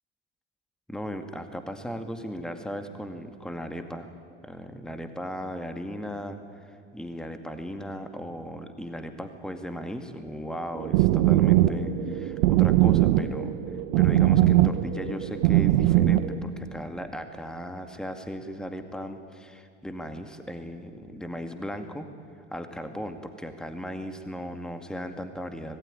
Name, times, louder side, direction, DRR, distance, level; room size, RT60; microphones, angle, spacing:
voice 1, 0.9-4.1 4.4-13.5 14.0-22.1 22.5-25.8, equal, ahead, 7 dB, 2.2 m, -37 dB
sound 1, 10.7-16.4, right 14 dB, 60° right, 1.2 m, -21 dB
26.0 x 19.5 x 9.9 m, 2.2 s
figure-of-eight pair, 70°, 36 cm